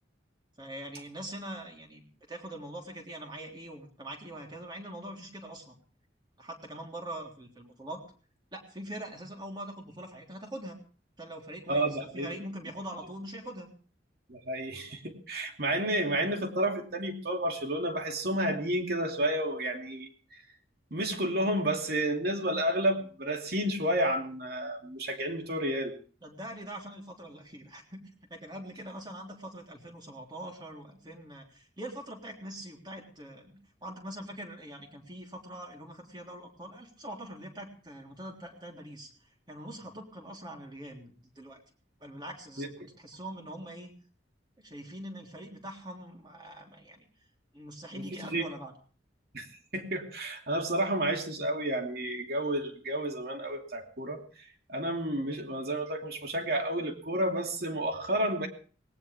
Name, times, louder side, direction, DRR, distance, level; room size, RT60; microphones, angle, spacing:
voice 1, 0.6-2.0 2.3-5.8 6.4-8.0 8.5-10.8 11.2-13.7 26.2-28.0 28.3-39.1 39.5-41.6 42.0-43.9 44.6-47.1 47.5-48.7, right 1 dB, 25° right, 1 dB, 3.5 m, -43 dB
voice 2, 11.7-12.3 14.3-20.4 20.9-25.9 42.6-42.7 48.0-48.4 49.3-58.5, right 1 dB, 55° right, 3 dB, 2.8 m, -31 dB
19.0 x 18.5 x 3.5 m, 0.40 s
head